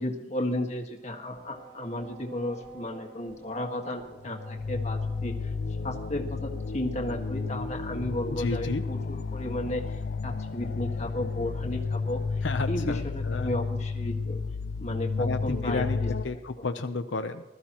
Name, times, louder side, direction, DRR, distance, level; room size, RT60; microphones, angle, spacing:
voice 1, 0.0-5.5 5.8-12.2 12.7-14.4 14.8-16.1, left 1 dB, 40° left, 3 dB, 1.7 m, -34 dB
sound 1, 0.9-12.8, right 3 dB, 20° right, 3.3 m, -52 dB
sound 2, 4.2-16.3, left 4 dB, 60° left, 0.5 m, -32 dB
voice 2, 8.3-8.8 12.4-13.5 15.2-17.4, left 3 dB, 90° left, 7 dB, 0.7 m, -32 dB
20.5 x 13.5 x 3.0 m, 1.1 s
head